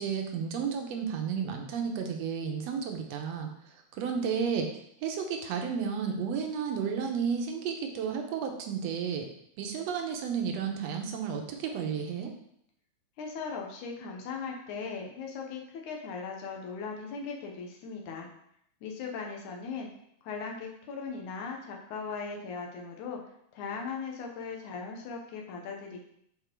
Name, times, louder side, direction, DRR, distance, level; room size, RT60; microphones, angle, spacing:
voice 1, 0.0-3.5 3.9-4.7 5.0-9.3 9.6-12.3, right 6 dB, 70° right, 3 dB, 2.0 m, -32 dB
voice 2, 13.2-18.3 18.8-19.9 20.2-23.2 23.5-26.0, left 5 dB, 85° left, 1 dB, 2.5 m, -38 dB
8.2 x 4.3 x 4.5 m, 0.71 s
omnidirectional pair, 3.4 m